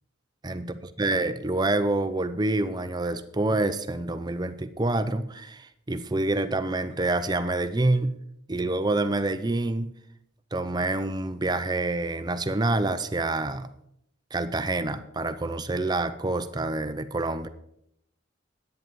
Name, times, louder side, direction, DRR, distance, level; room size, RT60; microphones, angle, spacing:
voice 1, 0.4-8.2 8.5-9.9 10.5-13.7 14.3-17.5, right 2 dB, 20° right, 10 dB, 0.6 m, -27 dB
11.0 x 9.1 x 5.3 m, 0.75 s
head